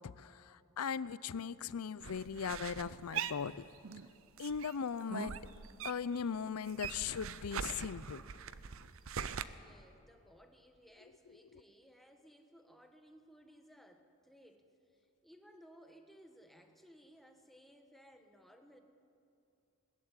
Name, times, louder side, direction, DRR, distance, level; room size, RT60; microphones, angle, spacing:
voice 1, 0.0-3.6 4.4-5.4 5.8-8.2, left 6 dB, 85° left, 18 dB, 0.5 m, -39 dB
sound 1, 2.0-4.1 4.4-6.2 6.5-9.4, right 7 dB, 65° right, 0.7 m, -42 dB
voice 2, 9.5-18.8, equal, ahead, 5 dB, 1.3 m, -61 dB
20.5 x 14.0 x 9.7 m, 2.6 s
head